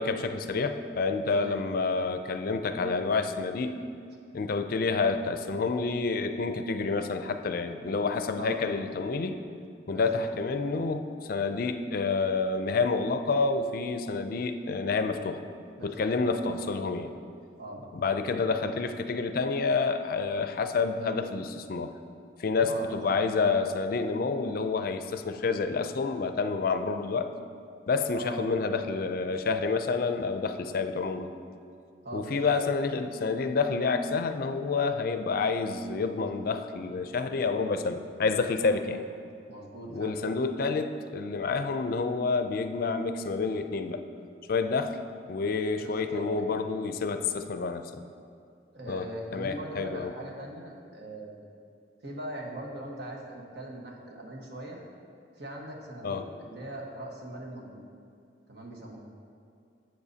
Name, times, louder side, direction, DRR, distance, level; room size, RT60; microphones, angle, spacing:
voice 1, 0.0-3.8 4.3-9.3 9.9-15.4 15.8-17.1 17.9-21.9 22.4-27.3 27.9-31.3 32.1-39.0 39.9-44.0 44.5-45.0 45.3-47.9 48.9-50.1 56.0-56.3, left 4 dB, 55° left, 8 dB, 0.4 m, -29 dB
voice 2, 9.9-10.3 15.8-16.9 17.6-17.8 22.6-23.2 28.2-28.6 32.0-32.5 38.6-39.1 39.5-40.2 45.8-46.6 48.7-51.4 52.0-54.8 55.4-57.9 58.5-59.0, right 1 dB, 65° right, -1 dB, 1.3 m, -41 dB
12.0 x 7.8 x 2.8 m, 2.3 s
head